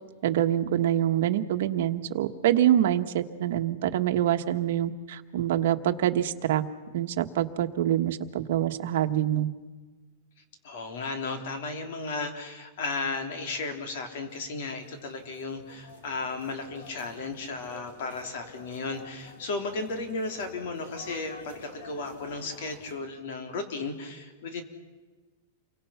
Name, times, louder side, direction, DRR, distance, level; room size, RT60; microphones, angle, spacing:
voice 1, 0.2-6.6 6.9-9.5, right 11 dB, 55° right, 6 dB, 1.4 m, -25 dB
voice 2, 10.6-24.6, left 3 dB, 50° left, 5 dB, 3.5 m, -34 dB
sound 1, 14.3-23.0, left 2 dB, 75° left, 5.1 m, -49 dB
29.5 x 24.0 x 5.8 m, 1.3 s
supercardioid pair, 175°, 0 cm